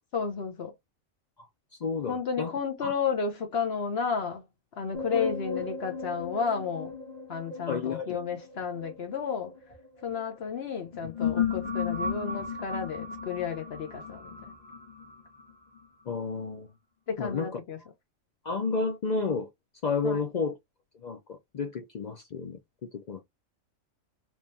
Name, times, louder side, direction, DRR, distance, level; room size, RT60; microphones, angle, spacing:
voice 1, 0.1-0.7 2.1-4.4 4.8-6.9 7.3-9.5 10.0-14.5 17.1-17.8 20.0-20.3, left 6 dB, 55° left, 0.9 m, -32 dB
voice 2, 1.7-2.5 2.8-2.9 7.7-8.1 16.1-16.7 17.2-17.5 18.4-19.5 19.8-20.5 21.0-23.2, left 4 dB, 75° left, 0.4 m, -31 dB
sound 1, 4.9-10.2 10.8-15.8, left 6 dB, 30° left, 1.5 m, -35 dB
3.5 x 3.0 x 2.7 m
omnidirectional pair, 1.4 m